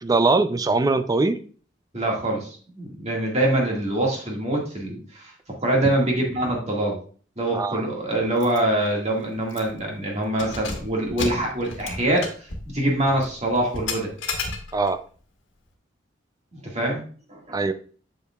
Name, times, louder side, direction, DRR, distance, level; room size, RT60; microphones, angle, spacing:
voice 1, 0.0-1.4 7.5-7.8 14.7-15.0 17.5-17.7, right 3 dB, 20° right, 11 dB, 0.4 m, -21 dB
voice 2, 1.9-5.3 5.6-7.0 7.4-12.3 12.7-14.1 16.5-17.0 17.3-17.6, right 1 dB, 35° right, -1 dB, 1.8 m, -24 dB
Keys jangling, 8.4-8.6 8.9-9.0 9.5-9.8 10.3-15.0, left 4 dB, 80° left, 1.5 m, -34 dB
8.2 x 6.6 x 2.3 m, 0.42 s
head